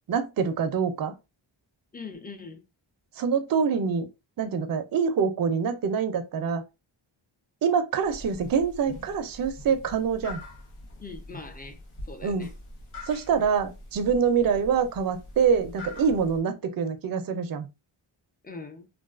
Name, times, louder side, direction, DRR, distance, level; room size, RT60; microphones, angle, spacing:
voice 1, 0.1-1.1 3.2-4.1 4.4-6.6 7.6-10.4 12.2-12.5 13.1-17.7, right 6 dB, 45° right, 0.4 m, -25 dB
voice 2, 1.9-2.6 11.0-11.8 12.1-12.5 18.4-18.9, left 3 dB, 20° left, 0.4 m, -41 dB
sound 1, 8.0-16.4, left 2 dB, 75° left, 0.9 m, -44 dB
2.4 x 2.3 x 2.3 m
wide cardioid pair, 75°, 49 cm